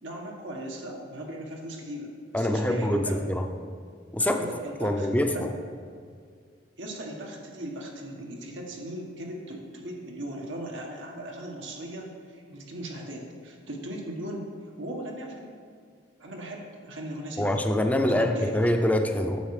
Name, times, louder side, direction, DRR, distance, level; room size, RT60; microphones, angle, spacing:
voice 1, 0.0-3.3 4.2-5.4 6.8-14.5 14.8-15.5 16.2-17.6 18.1-18.6, right 1 dB, 90° right, -1 dB, 1.6 m, -38 dB
voice 2, 2.3-3.5 4.1-4.5 4.8-5.3 17.4-19.4, left 1 dB, 10° left, 5 dB, 0.6 m, -24 dB
9.3 x 7.2 x 4.9 m, 2.1 s
head